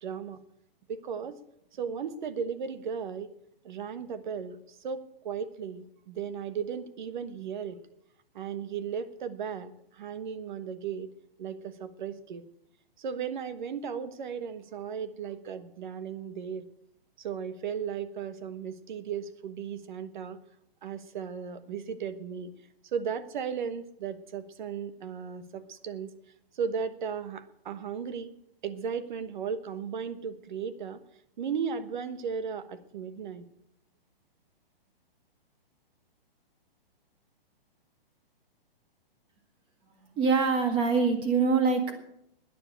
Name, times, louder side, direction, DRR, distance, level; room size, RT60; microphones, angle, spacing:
voice 1, 0.0-0.4 0.9-1.4 1.7-3.3 3.6-7.8 8.3-11.1 11.4-12.5 13.0-16.6 17.2-20.4 20.8-22.5 22.9-26.1 26.5-28.3 28.6-31.0 31.4-33.4, right 7 dB, 55° right, 12 dB, 1.3 m, -36 dB
voice 2, 40.1-41.9, right 5 dB, 15° right, 5 dB, 1.9 m, -24 dB
11.5 x 10.0 x 8.9 m, 0.75 s
hypercardioid pair, 160°, 30 cm